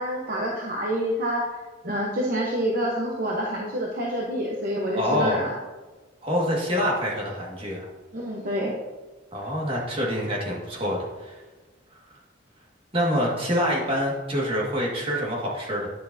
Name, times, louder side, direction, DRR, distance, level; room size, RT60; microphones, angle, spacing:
voice 1, 0.0-1.4 1.8-5.5 8.1-8.7, equal, 45° right, -2 dB, 0.9 m, -27 dB
voice 2, 4.9-5.4 6.2-7.9 9.3-11.3 12.9-15.9, equal, 30° right, -3 dB, 1.9 m, -26 dB
10.0 x 6.9 x 2.7 m, 1.3 s
head